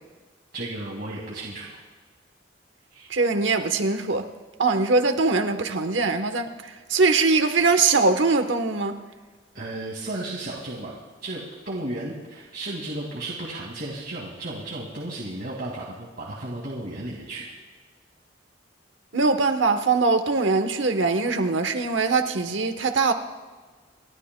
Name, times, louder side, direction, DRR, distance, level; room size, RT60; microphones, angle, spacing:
voice 1, 0.5-1.7 2.9-3.1 9.5-10.9 11.2-17.5, right 1 dB, 55° right, 2.1 m, -34 dB
voice 2, 3.1-4.2 4.6-9.0 19.1-23.1, right 3 dB, 90° right, 1.1 m, -22 dB
29.0 x 12.0 x 2.2 m
head